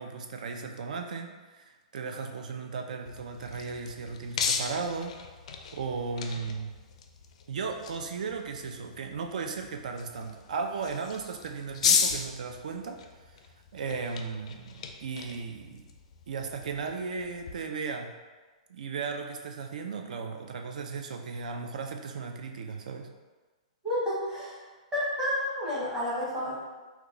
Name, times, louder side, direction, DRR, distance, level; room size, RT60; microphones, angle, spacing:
voice 1, 0.0-5.1 5.7-6.7 7.5-13.0 13.7-15.8 16.3-18.1 18.7-23.1, right 5 dB, 75° right, 4 dB, 0.4 m, -36 dB
sound 1, 3.1-17.5, left 6 dB, 55° left, 0.3 m, -35 dB
voice 2, 23.8-24.6 24.9-26.5, left 1 dB, 15° right, -9 dB, 1.0 m, -30 dB
2.9 x 2.3 x 3.7 m, 1.3 s
hypercardioid pair, 170°, 4 cm